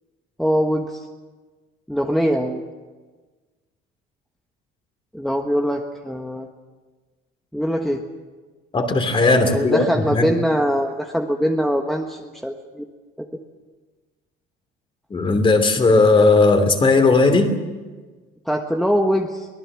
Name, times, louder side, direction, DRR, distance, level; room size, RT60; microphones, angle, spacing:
voice 1, 0.4-1.0 1.9-2.6 5.1-6.5 7.5-8.0 9.4-12.8 13.2-13.3 18.5-19.5, equal, ahead, 3 dB, 1.4 m, -22 dB
voice 2, 8.7-10.3 15.1-17.5, left 3 dB, 25° left, 7 dB, 3.1 m, -16 dB
24.0 x 18.5 x 7.5 m, 1.3 s
cardioid pair, 130°, 20 cm